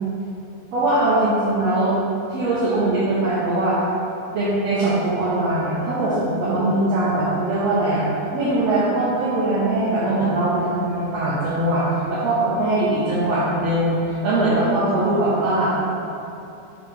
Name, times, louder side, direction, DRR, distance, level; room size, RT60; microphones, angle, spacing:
voice 1, 0.7-1.9 2.3-3.8 4.3-8.0 8.3-11.8 12.1-15.7, right 2 dB, 90° right, -9 dB, 1.5 m, -21 dB
8.1 x 3.8 x 3.2 m, 2.8 s
omnidirectional pair, 4.2 m